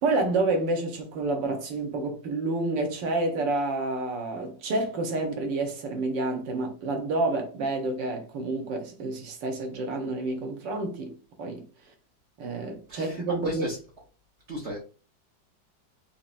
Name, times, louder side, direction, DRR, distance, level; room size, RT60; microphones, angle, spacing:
voice 1, 0.0-11.6 12.4-13.6, right 2 dB, 70° right, 1.5 m, -29 dB
voice 2, 12.9-13.8 14.5-14.8, right 1 dB, 45° right, 1.0 m, -35 dB
4.6 x 2.7 x 2.5 m
omnidirectional pair, 2.1 m